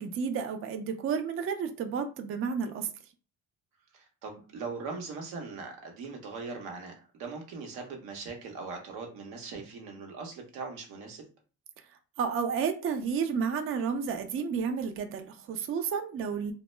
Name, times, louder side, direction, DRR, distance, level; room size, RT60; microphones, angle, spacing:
voice 1, 0.0-2.9 12.2-16.5, right 6 dB, 40° right, 0.4 m, -31 dB
voice 2, 3.9-11.2, right 4 dB, 85° right, 0.8 m, -40 dB
2.1 x 2.0 x 3.1 m
supercardioid pair, 70°, 36 cm